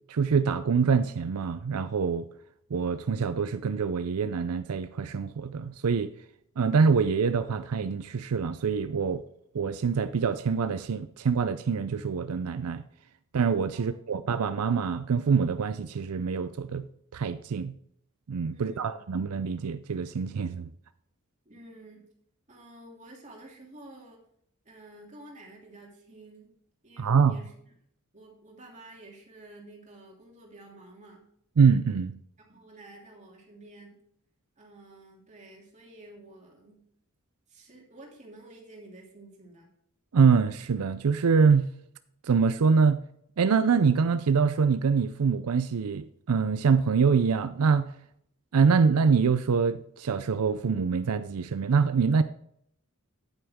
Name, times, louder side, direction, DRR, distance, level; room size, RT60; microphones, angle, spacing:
voice 1, 0.1-2.3 2.7-6.1 6.6-9.2 9.5-12.8 13.3-16.9 17.1-17.7 18.3-20.7 27.0-27.4 31.6-32.1 40.1-41.7 42.2-43.0 43.4-47.9 48.5-52.2, right 5 dB, 90° right, 0.5 m, -25 dB
voice 2, 13.7-14.2 18.5-19.0 21.4-22.0 22.5-24.2 24.6-26.5 26.8-27.7 28.1-31.2 32.5-34.0 34.6-36.8 37.5-39.7, right 1 dB, 35° right, 2.8 m, -50 dB
9.8 x 8.9 x 3.6 m
head